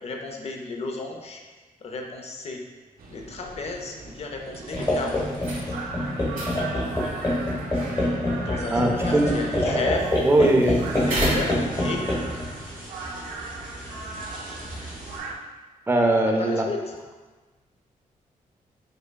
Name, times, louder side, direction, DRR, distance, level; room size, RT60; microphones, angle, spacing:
voice 1, 0.0-1.4 1.8-2.6 3.1-5.3 8.4-12.1 16.4-16.9, left 3 dB, 45° left, 2 dB, 0.5 m, -33 dB
sound 1, 3.0-15.3, right 3 dB, 85° right, 0.4 m, -38 dB
sound 2, 4.7-15.2, left 1 dB, 25° left, 1.0 m, -27 dB
sound 3, 4.7-12.2, right 1 dB, 70° right, 1.3 m, -36 dB
voice 2, 8.7-9.3 10.2-10.8 15.9-16.6, right 2 dB, 15° right, 2 dB, 0.4 m, -20 dB
5.1 x 2.2 x 2.2 m, 1.3 s
cardioid pair, 100°, 14 cm